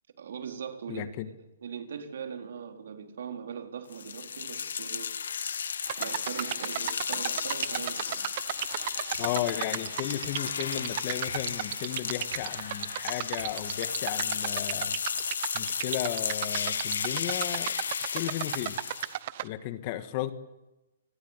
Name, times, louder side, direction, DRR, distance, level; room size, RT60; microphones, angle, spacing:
voice 1, 0.2-1.3 1.6-5.3 6.0-8.3, right 7 dB, 65° right, 4 dB, 4.2 m, -40 dB
voice 2, 0.9-1.3 9.2-15.0 15.5-17.7 18.1-18.8 19.4-20.3, left 13 dB, 30° left, 11 dB, 1.7 m, -34 dB
sound 1, 3.9-19.2, left 7 dB, 80° left, 1.7 m, -34 dB
sound 2, 5.9-19.5, right 14 dB, 40° right, 0.9 m, -36 dB
sound 3, 8.4-13.5, right 5 dB, 85° right, 6.0 m, -48 dB
28.0 x 21.5 x 8.3 m, 1.0 s
hypercardioid pair, 165°, 0 cm